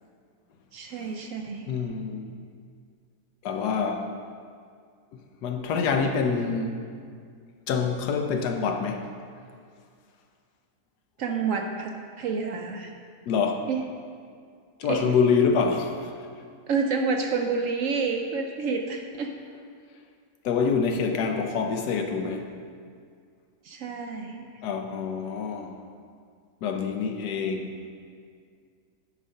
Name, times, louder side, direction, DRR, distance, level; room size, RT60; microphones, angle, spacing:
voice 1, 0.7-1.7 11.2-12.9 13.7-13.8 14.9-15.1 16.7-19.3 23.6-24.4, right 5 dB, 65° right, 3 dB, 0.9 m, -29 dB
voice 2, 1.7-2.3 3.4-4.1 5.4-6.8 7.7-9.0 13.3-13.7 14.8-16.1 20.4-22.5 24.6-25.8 26.6-27.8, left 5 dB, 80° left, 4 dB, 1.3 m, -26 dB
10.0 x 4.2 x 5.5 m, 2.2 s
omnidirectional pair, 1.7 m